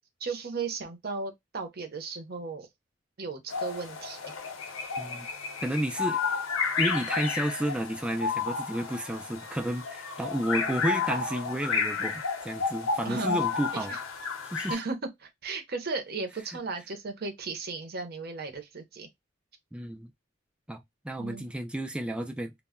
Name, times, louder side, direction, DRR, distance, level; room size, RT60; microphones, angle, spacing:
voice 1, 0.2-2.7 3.2-4.3 13.0-13.4 13.7-14.0 14.7-19.1 21.2-21.5, right 4 dB, 50° right, 0.6 m, -35 dB
sound 1, 3.5-14.7, left 5 dB, 85° left, 0.7 m, -32 dB
voice 2, 5.6-6.2 6.8-13.9 14.4-14.8 19.7-20.1 20.7-22.6, right 1 dB, 5° right, 0.3 m, -32 dB
2.1 x 2.0 x 3.5 m
head